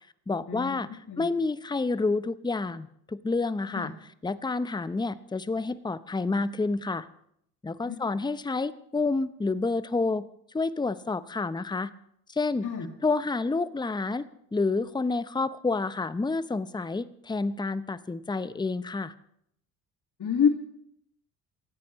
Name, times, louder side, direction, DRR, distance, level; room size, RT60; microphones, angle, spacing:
voice 1, 0.3-3.9 4.2-7.1 7.6-10.3 10.5-11.9 12.3-12.7 13.0-14.2 14.5-19.1, left 3 dB, 10° left, 15 dB, 0.8 m, -29 dB
voice 2, 7.8-8.2 12.6-12.9 20.2-20.5, left 7 dB, 40° left, 1 dB, 2.3 m, -27 dB
27.5 x 14.0 x 3.2 m, 0.71 s
hypercardioid pair, 50°, 50 cm